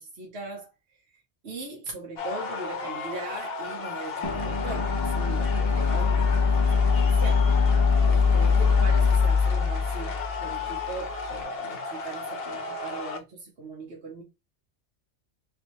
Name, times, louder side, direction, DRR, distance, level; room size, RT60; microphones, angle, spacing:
voice 1, 0.0-6.4 6.7-7.5 8.1-14.2, right 3 dB, 65° right, 1.3 m, -40 dB
sound 1, 2.2-13.2, left 4 dB, 60° left, 1.0 m, -35 dB
sound 2, 4.2-11.3, left 5 dB, 35° left, 0.4 m, -23 dB
3.8 x 3.0 x 3.0 m
omnidirectional pair, 1.2 m